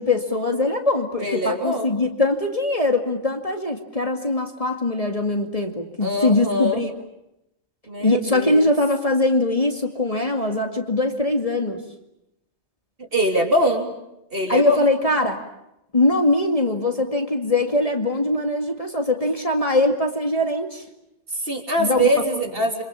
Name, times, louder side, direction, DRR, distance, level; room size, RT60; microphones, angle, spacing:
voice 1, 0.0-6.9 8.0-11.8 14.5-15.4 15.9-20.8 21.8-22.1, left 2 dB, 30° left, 4 dB, 2.3 m, -22 dB
voice 2, 1.2-1.9 6.0-6.8 7.9-8.7 13.1-13.9 14.3-14.9 21.4-22.8, equal, 50° right, 3 dB, 3.6 m, -23 dB
27.0 x 26.0 x 7.1 m, 0.85 s
omnidirectional pair, 1.3 m